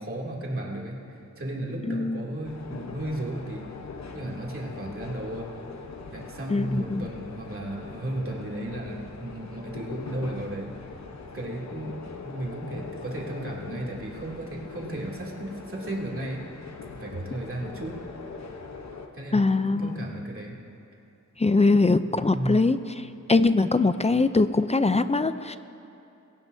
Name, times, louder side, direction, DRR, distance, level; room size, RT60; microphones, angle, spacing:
voice 1, 0.0-3.7 4.1-5.5 6.1-10.7 11.3-16.7 16.9-17.9 19.1-20.6 22.3-22.7, right 1 dB, 45° right, -3 dB, 2.7 m, -34 dB
voice 2, 1.9-2.2 6.5-7.0 19.3-20.0 21.4-22.8 23.3-25.6, left 3 dB, 20° left, 12 dB, 0.5 m, -22 dB
sound 1, 2.4-19.1, left 4 dB, 60° left, 1.1 m, -41 dB
23.0 x 16.0 x 2.7 m, 2.8 s
wide cardioid pair, 80°, 31 cm